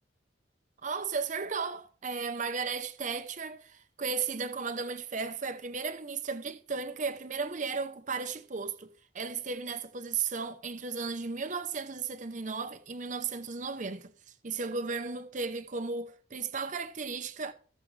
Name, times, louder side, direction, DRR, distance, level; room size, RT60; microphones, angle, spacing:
voice 1, 0.8-17.5, right 5 dB, 40° right, 0.8 m, -35 dB
17.5 x 6.7 x 3.3 m
head